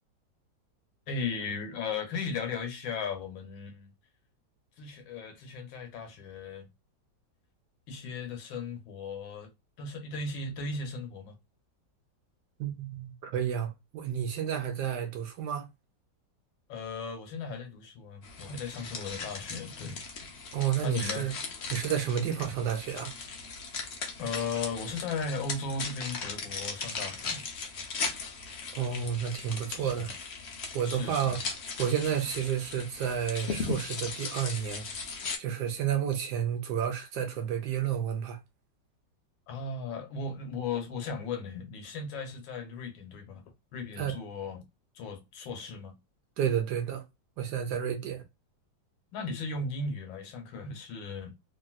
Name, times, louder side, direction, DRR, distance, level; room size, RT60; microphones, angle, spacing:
voice 1, 1.1-3.9 4.8-6.7 7.9-9.5 9.8-11.4 16.7-20.0 20.8-21.3 24.2-27.5 29.8-30.1 30.8-31.4 39.5-43.4 43.7-44.6 44.9-45.9 49.1-51.3, left 4 dB, 85° left, 1.5 m, -36 dB
voice 2, 12.6-15.7 20.5-21.3 21.7-23.1 28.7-30.1 30.7-31.4 31.8-34.9 35.4-38.4 44.0-44.2 46.4-47.0 47.4-48.2, right 9 dB, 70° right, 1.1 m, -31 dB
sound 1, 18.2-35.4, left 4 dB, 65° left, 0.6 m, -38 dB
3.2 x 2.6 x 2.2 m
omnidirectional pair, 2.0 m